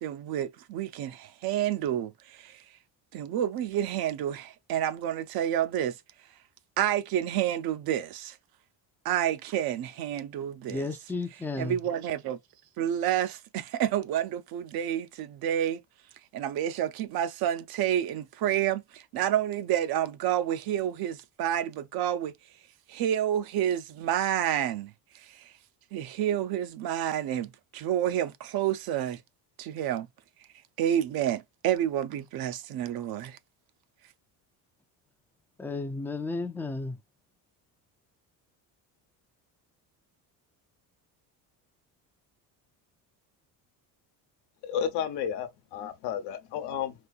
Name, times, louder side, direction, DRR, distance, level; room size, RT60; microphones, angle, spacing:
voice 1, 0.0-2.6 3.1-5.9 6.8-8.4 9.0-10.8 11.6-12.4 12.8-15.8 16.3-22.3 22.9-24.9 25.3-25.4 25.9-29.2 29.6-30.1 30.8-33.4, right 11 dB, 65° right, 0.7 m, -29 dB
voice 2, 10.7-11.8 35.6-37.0, left 3 dB, 5° left, 0.4 m, -33 dB
voice 3, 44.6-46.9, left 8 dB, 80° left, 1.0 m, -32 dB
4.2 x 2.6 x 2.4 m
cardioid pair, 125°, 40 cm